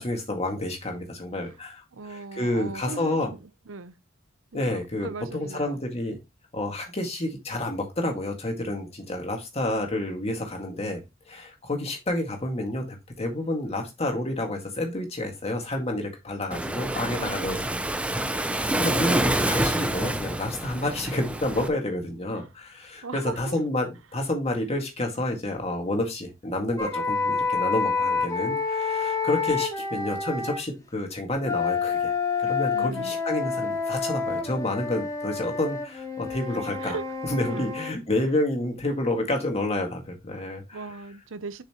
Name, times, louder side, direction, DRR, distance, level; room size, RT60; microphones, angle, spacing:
voice 1, 0.0-3.3 4.5-6.2 6.5-11.0 11.3-17.8 18.2-32.1 32.4-37.0 37.3-40.8, left 1 dB, 30° left, 2.0 m, -29 dB
voice 2, 1.9-4.0 4.5-5.8 16.9-17.7 20.8-20.9 22.3-22.5 23.0-23.6 32.7-33.2 36.8-37.0 37.5-37.8 39.1-39.3 40.7-41.6, right 4 dB, 70° right, 0.7 m, -39 dB
Waves surf, 16.5-21.7, right 1 dB, 5° right, 0.6 m, -27 dB
sound 1, 26.8-30.6 31.4-37.9, left 5 dB, 15° left, 1.2 m, -28 dB
7.2 x 5.7 x 3.0 m
head